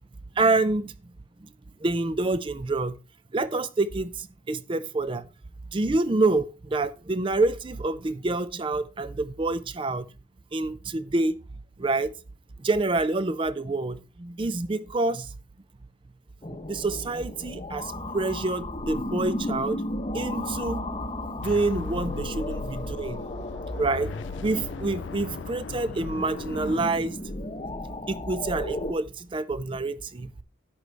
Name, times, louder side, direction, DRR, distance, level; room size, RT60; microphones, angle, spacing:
voice 1, 0.4-0.9 1.8-3.0 3.3-5.3 5.7-10.1 10.5-11.4 11.8-12.1 12.6-15.3 16.5-19.8 20.1-20.8 21.4-23.2 23.8-24.1 24.4-27.2 28.1-30.3, right 2 dB, 25° right, 0.4 m, -27 dB
sound 1, 16.4-28.9, left 1 dB, 30° left, 0.8 m, -35 dB
sound 2, 21.4-27.6, left 5 dB, 70° left, 0.4 m, -38 dB
11.0 x 8.0 x 3.3 m
head